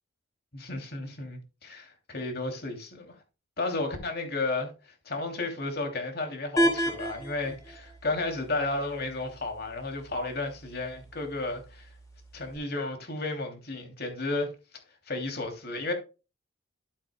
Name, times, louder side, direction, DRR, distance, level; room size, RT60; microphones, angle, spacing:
voice 1, 0.5-3.1 3.6-11.9 12.3-14.5 15.1-15.9, left 2 dB, 55° left, 2.7 m, -33 dB
sound 1, 6.6-12.6, equal, 15° left, 3.8 m, -34 dB
12.0 x 8.4 x 2.2 m
head